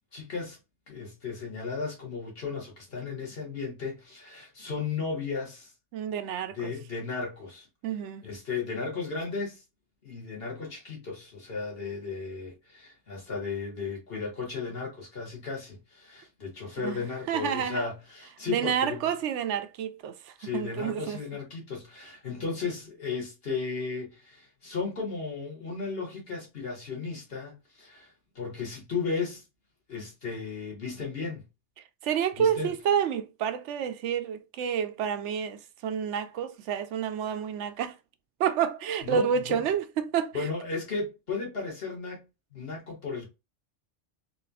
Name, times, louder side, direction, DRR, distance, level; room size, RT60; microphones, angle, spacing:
voice 1, 0.1-0.6 0.9-5.7 6.5-7.7 8.2-9.6 10.0-19.0 20.4-29.4 29.9-31.5 32.4-32.7 39.0-39.3 40.3-42.3 42.5-43.3, left 4 dB, 60° left, 1.9 m, -35 dB
voice 2, 5.9-6.7 7.8-8.3 16.8-17.9 18.5-21.2 32.0-38.0 38.4-40.5, right 8 dB, 85° right, 0.9 m, -29 dB
4.0 x 2.9 x 2.3 m
omnidirectional pair, 1.2 m